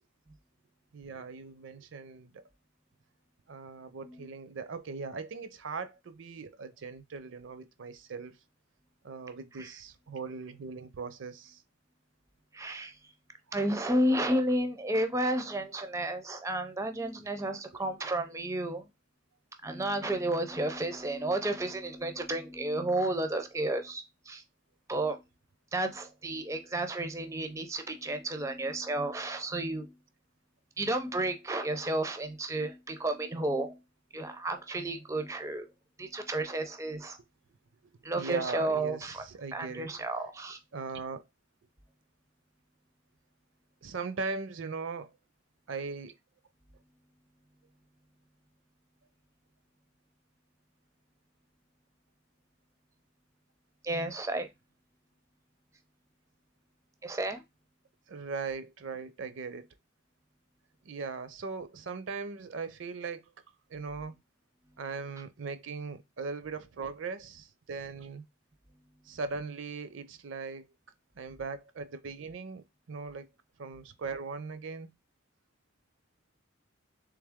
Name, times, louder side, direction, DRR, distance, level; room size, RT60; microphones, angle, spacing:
voice 1, 0.9-2.4 3.5-8.4 9.0-11.6 18.0-18.1 37.8-40.0 40.7-41.2 43.8-45.1 45.7-46.1 58.1-59.7 60.8-63.3 63.7-64.1 64.8-68.2 69.1-70.7 71.2-73.3 73.6-74.9, right 4 dB, 65° right, 0.5 m, -39 dB
voice 2, 12.5-12.9 13.5-18.9 19.6-24.4 24.9-25.2 25.7-29.9 30.8-33.8 34.1-35.7 36.0-37.2 38.0-39.2 39.5-40.6 53.8-54.5 57.0-57.4, right 1 dB, 15° right, 0.4 m, -32 dB
3.4 x 3.3 x 3.5 m
head